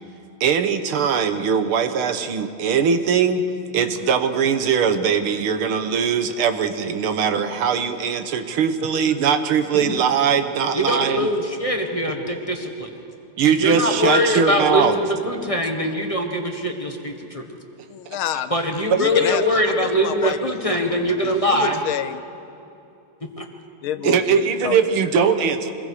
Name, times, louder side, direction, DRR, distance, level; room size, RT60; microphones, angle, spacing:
voice 1, 0.4-3.4 3.7-11.3 13.4-15.0 24.0-25.7, right 7 dB, 75° right, 8 dB, 1.9 m, -20 dB
voice 2, 10.7-12.9 13.4-17.4 18.5-21.8 23.4-23.5, equal, 20° left, 3 dB, 1.2 m, -22 dB
voice 3, 17.9-18.5 19.0-22.2 23.8-24.8 25.1-25.3, left 10 dB, 75° left, 13 dB, 1.5 m, -29 dB
26.0 x 21.0 x 4.9 m, 2.6 s
omnidirectional pair, 2.4 m